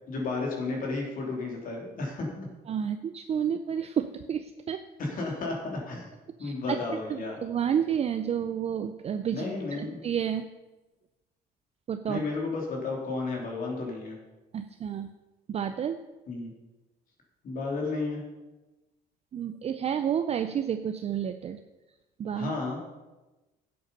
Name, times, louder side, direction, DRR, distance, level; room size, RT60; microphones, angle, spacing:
voice 1, 0.1-2.5 5.0-6.1 6.4-7.4 9.3-9.9 12.1-14.2 16.3-16.5 17.4-18.2 22.3-22.8, left 3 dB, 55° left, 0 dB, 3.2 m, -32 dB
voice 2, 2.7-4.8 6.4-6.8 7.1-10.4 11.9-12.2 14.5-15.1 15.5-16.0 19.3-21.6 22.2-22.5, right 8 dB, 40° right, 9 dB, 0.5 m, -30 dB
10.5 x 7.9 x 5.4 m, 1.1 s
cardioid pair, 110°, 17 cm